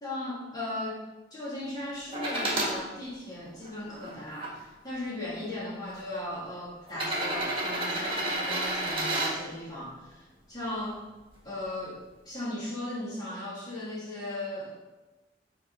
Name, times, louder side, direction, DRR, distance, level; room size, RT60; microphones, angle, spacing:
voice 1, 0.0-1.0 1.3-11.0 11.4-14.7, left 1 dB, 25° left, -7 dB, 2.5 m, -37 dB
sound 1, 2.1-2.7 3.5-4.5 5.5-5.6 6.9-9.3 11.2-11.3, right 1 dB, 30° right, 1.8 m, -30 dB
8.2 x 4.1 x 5.4 m, 1.1 s
head